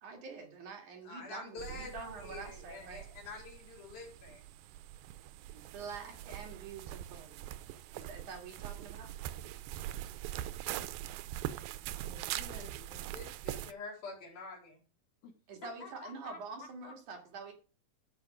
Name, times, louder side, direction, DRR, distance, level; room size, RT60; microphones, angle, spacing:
voice 1, 0.0-3.1 5.5-7.5 7.9-9.1 15.5-17.5, right 4 dB, 60° right, 2 dB, 3.4 m, -46 dB
voice 2, 1.0-4.4 13.1-14.8, left 3 dB, 85° left, -1 dB, 5.9 m, -47 dB
sound 1, 1.6-13.7, right 13 dB, 85° right, 2.5 m, -43 dB
voice 3, 11.9-13.2 15.2-15.3 15.6-16.9, left 4 dB, 60° left, 2 dB, 3.5 m, -51 dB
13.5 x 5.4 x 4.9 m, 0.37 s
omnidirectional pair, 4.1 m